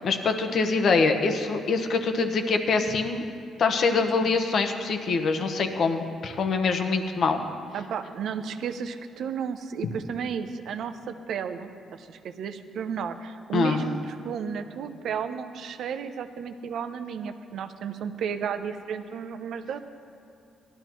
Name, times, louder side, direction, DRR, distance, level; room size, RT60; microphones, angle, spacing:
voice 1, 0.0-3.2 3.6-7.4 13.5-13.8, left 4 dB, 60° left, 6 dB, 1.0 m, -24 dB
voice 2, 7.7-19.8, right 7 dB, 70° right, 9 dB, 0.7 m, -33 dB
18.0 x 12.5 x 3.1 m, 2.6 s
cardioid pair, 90°, 0 cm